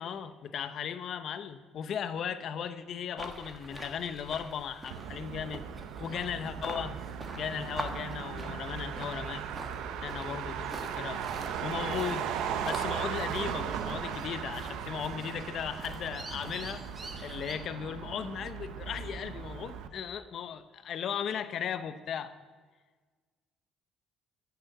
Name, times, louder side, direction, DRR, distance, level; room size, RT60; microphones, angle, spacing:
voice 1, 0.0-5.6 6.0-7.0 7.3-9.4 10.0-10.6 10.8-11.2 11.6-12.3 12.6-16.8 17.2-22.3, left 8 dB, 50° left, 12 dB, 0.7 m, -36 dB
sound 1, 3.2-17.5, right 2 dB, 20° right, 1.4 m, -46 dB
Motor vehicle (road), 4.9-19.9, right 8 dB, 80° right, 0.8 m, -37 dB
15.0 x 6.9 x 6.5 m, 1.4 s
cardioid pair, 140°, 0 cm